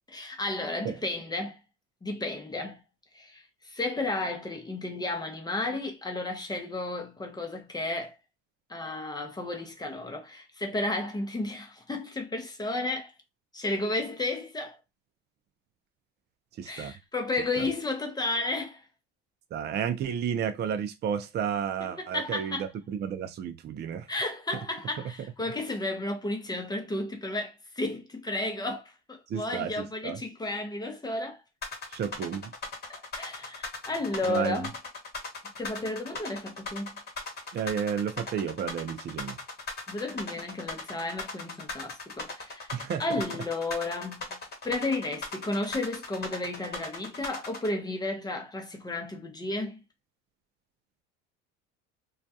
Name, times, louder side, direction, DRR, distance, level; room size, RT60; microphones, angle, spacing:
voice 1, 0.1-1.6 2.0-2.8 3.1-8.2 8.7-13.1 13.5-14.8 16.7-18.8 21.8-22.7 24.1-31.4 32.9-34.7 35.6-36.9 39.9-42.7 43.0-49.8, left 2 dB, 15° left, 0.6 m, -33 dB
voice 2, 16.6-16.9 17.6-17.7 19.5-24.1 29.3-30.2 31.9-32.5 34.3-34.6 37.5-39.4 42.7-43.0, right 8 dB, 30° right, 0.4 m, -32 dB
sound 1, 31.6-47.7, left 3 dB, 30° left, 1.1 m, -38 dB
2.3 x 2.2 x 2.6 m
supercardioid pair, 100°, 32 cm